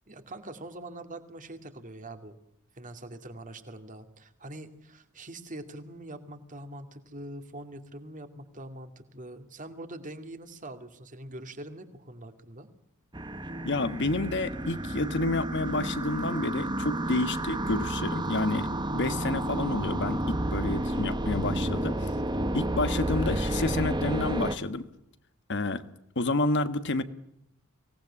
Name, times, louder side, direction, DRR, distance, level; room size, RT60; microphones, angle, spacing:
voice 1, 0.1-2.4 2.7-12.7, right 1 dB, 35° right, 7 dB, 2.4 m, -43 dB
sound 1, 13.1-24.6, right 1 dB, 20° right, 1.3 m, -31 dB
voice 2, 13.6-22.1 22.5-24.9 25.5-25.8 26.1-27.0, left 2 dB, 55° left, 11 dB, 1.4 m, -29 dB
24.5 x 18.5 x 9.9 m, 0.81 s
head